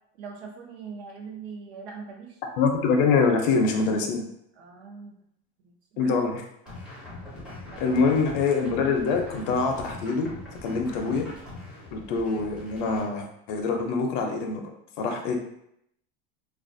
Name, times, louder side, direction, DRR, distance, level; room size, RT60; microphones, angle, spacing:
voice 1, 0.2-2.4 4.6-5.2 5.6-6.2 7.7-7.8, right 5 dB, 80° right, 0 dB, 0.7 m, -42 dB
voice 2, 2.6-4.2 6.0-6.4 7.8-10.3 10.6-11.3 11.9-14.6 15.0-15.4, left 4 dB, 55° left, 3 dB, 0.5 m, -24 dB
sound 1, 6.7-13.1, left 2 dB, 5° right, 0.4 m, -42 dB
2.4 x 2.2 x 2.5 m, 0.75 s
cardioid pair, 165°, 31 cm